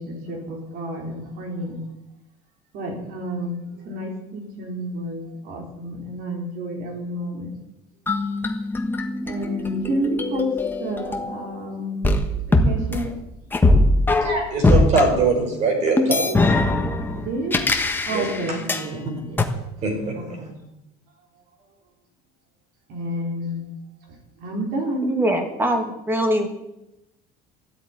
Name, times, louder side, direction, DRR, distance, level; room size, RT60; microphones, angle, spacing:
voice 1, 0.0-1.8 2.7-7.5 9.2-10.5 10.8-12.0 12.6-13.1 17.1-17.6 18.1-19.4 20.1-20.6 22.9-23.6 24.4-25.1, equal, 60° right, 2 dB, 3.9 m, -30 dB
sound 1, 8.1-11.6 12.0-15.0 16.0-18.9 19.4-19.5, left 2 dB, 10° left, 1.4 m, -21 dB
voice 2, 14.2-16.4 18.1-18.2 19.8-19.9, right 3 dB, 40° right, 3 dB, 4.9 m, -21 dB
voice 3, 25.1-26.5, right 1 dB, 10° right, 5 dB, 2.5 m, -22 dB
13.0 x 8.2 x 9.8 m, 0.89 s
cardioid pair, 145°, 17 cm